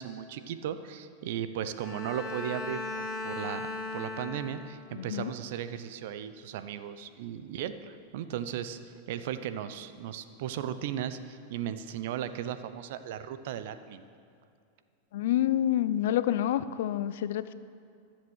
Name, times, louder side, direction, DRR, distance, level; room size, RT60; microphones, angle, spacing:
voice 1, 0.0-14.1, right 9 dB, 65° right, 12 dB, 0.7 m, -36 dB
Bowed string instrument, 1.8-5.0, left 2 dB, 5° left, 3.2 m, -37 dB
voice 2, 4.9-5.3 15.1-17.5, left 12 dB, 70° left, 15 dB, 0.5 m, -28 dB
14.0 x 7.4 x 6.3 m, 2.4 s
hypercardioid pair, 115°, 0 cm